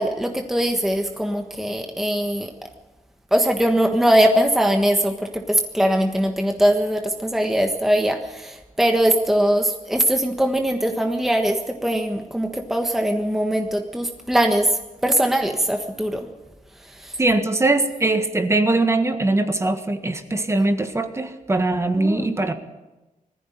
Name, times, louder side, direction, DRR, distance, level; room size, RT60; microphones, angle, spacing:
voice 1, 0.0-2.5 3.3-16.3 16.8-17.2 22.0-22.3, right 1 dB, ahead, 4 dB, 1.4 m, -21 dB
voice 2, 17.2-22.5, right 2 dB, 20° right, 7 dB, 1.6 m, -21 dB
20.5 x 15.0 x 10.0 m, 1.1 s
wide cardioid pair, 155°, 14 cm